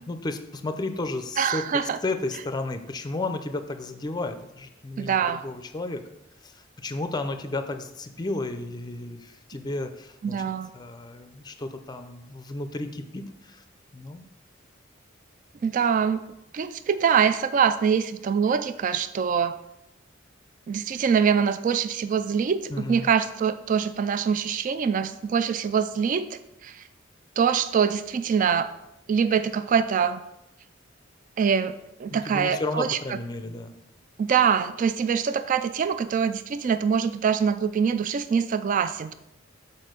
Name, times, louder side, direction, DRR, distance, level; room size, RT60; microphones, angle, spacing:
voice 1, 0.1-6.0 6.4-10.4 10.7-13.6 13.9-14.3 22.7-23.1 32.1-33.7, left 2 dB, 20° left, 8 dB, 0.5 m, -33 dB
voice 2, 1.4-2.0 5.0-5.4 10.2-10.7 15.6-16.3 16.5-19.6 20.7-26.3 26.6-26.8 27.4-28.7 29.1-30.2 31.4-33.0 34.2-39.1, right 7 dB, 40° right, 12 dB, 0.3 m, -24 dB
6.4 x 4.2 x 5.1 m, 0.86 s
head